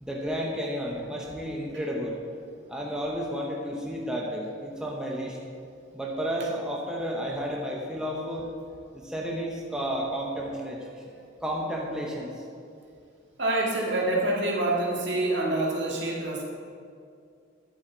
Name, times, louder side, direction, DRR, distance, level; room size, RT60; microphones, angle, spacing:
voice 1, 0.0-2.2 2.7-5.4 5.9-8.5 8.9-11.0 11.4-12.4, equal, 5° right, -2 dB, 0.9 m, -32 dB
voice 2, 13.4-16.4, right 2 dB, 60° right, -3 dB, 1.9 m, -26 dB
11.0 x 7.9 x 4.5 m, 2.4 s
head